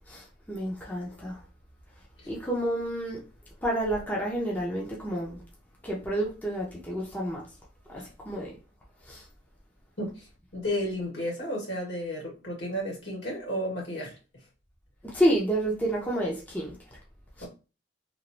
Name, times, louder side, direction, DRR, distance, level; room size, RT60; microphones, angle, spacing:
voice 1, 0.1-1.4 2.3-3.2 3.6-5.4 5.8-7.4 7.9-8.5 9.1-9.2 15.0-16.8 17.4-17.5, right 1 dB, 10° left, 0.7 m, -29 dB
voice 2, 10.0-10.3 10.5-14.2 17.4-17.5, equal, 75° left, 1.6 m, -33 dB
3.0 x 2.5 x 2.6 m
head